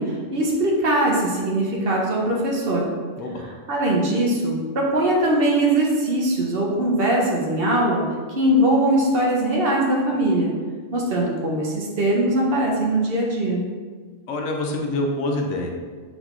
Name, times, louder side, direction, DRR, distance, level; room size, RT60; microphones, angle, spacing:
voice 1, 0.0-2.9 3.7-10.5 10.9-13.6, right 1 dB, 55° right, -2 dB, 0.9 m, -21 dB
voice 2, 3.1-3.5 14.3-15.7, left 2 dB, 80° left, 2 dB, 0.9 m, -26 dB
3.6 x 3.1 x 3.7 m, 1.5 s
omnidirectional pair, 1.3 m